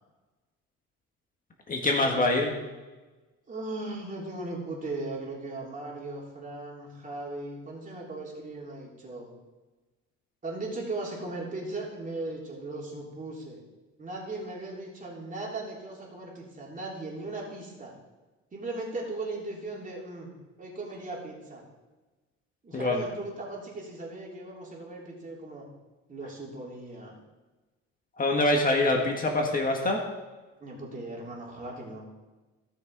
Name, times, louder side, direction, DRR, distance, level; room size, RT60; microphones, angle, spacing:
voice 1, 1.7-2.5 22.7-23.0 28.2-30.0, left 2 dB, 30° left, 1 dB, 1.7 m, -25 dB
voice 2, 3.5-9.3 10.4-13.6 14.0-17.9 18.5-20.3 20.6-21.6 22.6-25.7 26.1-27.1 30.6-32.1, right 2 dB, 30° right, -3 dB, 3.5 m, -38 dB
16.0 x 6.3 x 4.8 m, 1.2 s
cardioid pair, 115°, 29 cm